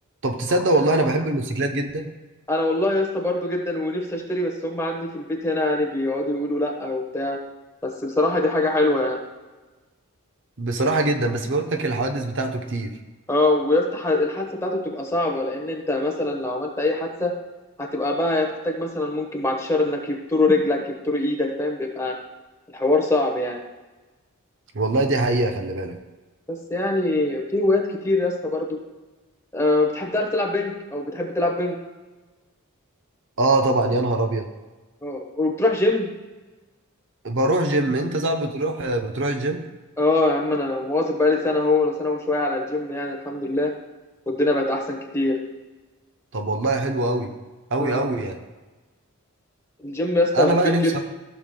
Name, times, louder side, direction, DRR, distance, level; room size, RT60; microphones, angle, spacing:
voice 1, 0.2-2.1 10.6-13.0 24.7-26.0 33.4-34.5 37.2-39.6 46.3-47.3 47.7-48.4 50.3-51.0, right 2 dB, 55° right, 5 dB, 0.8 m, -23 dB
voice 2, 2.5-7.4 7.8-9.2 13.3-17.3 17.8-22.1 22.7-23.6 26.5-28.8 29.5-31.7 35.0-36.1 40.0-43.7 44.3-45.4 47.8-48.0 49.8-51.0, left 2 dB, 10° left, 1 dB, 1.1 m, -23 dB
14.5 x 6.9 x 2.2 m, 1.2 s
head